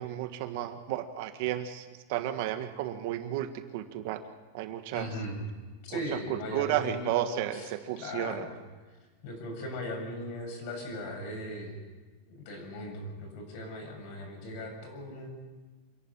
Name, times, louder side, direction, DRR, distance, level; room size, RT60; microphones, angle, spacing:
voice 1, 0.0-4.2 4.5-5.1 5.9-6.0 6.3-8.5, right 12 dB, 50° right, 8 dB, 1.6 m, -33 dB
voice 2, 4.9-5.4 5.8-7.2 7.5-7.7 8.0-8.5 9.2-11.8 12.3-15.3, left 1 dB, 45° left, 3 dB, 7.3 m, -38 dB
27.5 x 11.5 x 9.9 m, 1.3 s
supercardioid pair, 165°, 0 cm